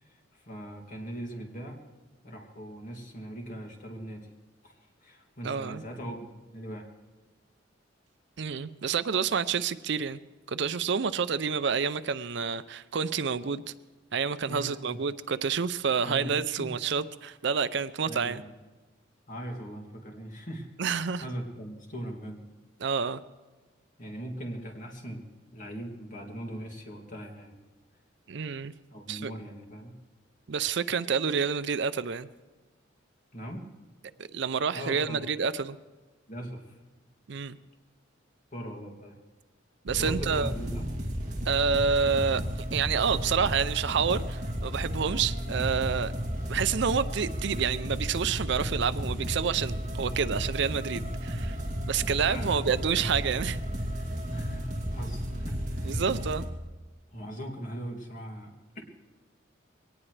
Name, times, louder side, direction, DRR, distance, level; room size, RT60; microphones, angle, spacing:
voice 1, 0.0-1.8 2.2-4.3 4.6-6.9 14.5-15.0 16.0-16.7 18.1-18.5 19.3-20.7 21.2-22.4 24.0-25.2 25.5-27.6 28.9-30.0 33.3-33.6 34.7-35.3 36.3-36.8 38.5-39.2 39.9-40.9 52.3-52.5 54.3-56.0 57.1-58.8, equal, 40° left, 1 dB, 2.5 m, -40 dB
voice 2, 5.4-5.8 8.4-10.2 10.5-13.6 14.1-18.4 20.8-21.3 22.8-23.2 28.3-28.7 29.1-29.3 30.5-32.3 34.2-35.8 37.3-37.6 39.8-40.5 41.5-42.4 42.7-46.1 46.5-51.6 51.9-53.6 55.9-56.4, right 6 dB, 60° right, 14 dB, 0.5 m, -28 dB
sound 1, 39.9-56.5, equal, 35° right, 2.6 m, -33 dB
23.0 x 18.5 x 3.3 m, 1.3 s
head